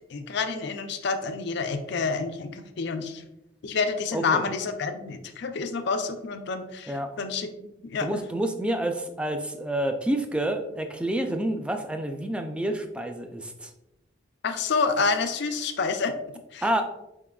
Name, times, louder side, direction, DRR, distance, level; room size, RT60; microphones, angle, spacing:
voice 1, 0.1-3.2 3.6-8.1 14.4-16.1 16.5-16.8, left 4 dB, 60° left, 7 dB, 0.4 m, -28 dB
voice 2, 4.1-4.4 6.9-7.1 8.0-13.7 16.6-16.8, right 1 dB, 5° right, 5 dB, 0.3 m, -28 dB
5.0 x 3.7 x 2.3 m, 0.90 s
head